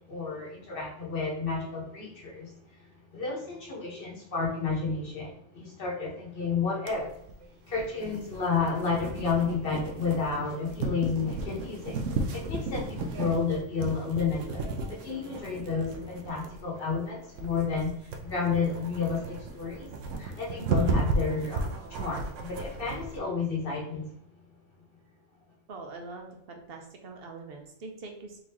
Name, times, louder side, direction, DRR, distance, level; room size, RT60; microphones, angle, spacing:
voice 1, 0.1-2.8 3.1-7.1 7.7-19.9 20.2-24.1, left 5 dB, 50° left, -2 dB, 1.5 m, -31 dB
sound 1, 6.9-23.2, right 3 dB, 90° right, 1.0 m, -34 dB
sound 2, 9.0-10.1 10.8-11.8 12.5-13.6, left 4 dB, 65° left, 0.8 m, -44 dB
voice 2, 25.7-28.4, right 3 dB, 55° right, 3 dB, 1.0 m, -43 dB
4.0 x 3.7 x 2.9 m, 0.72 s
omnidirectional pair, 1.3 m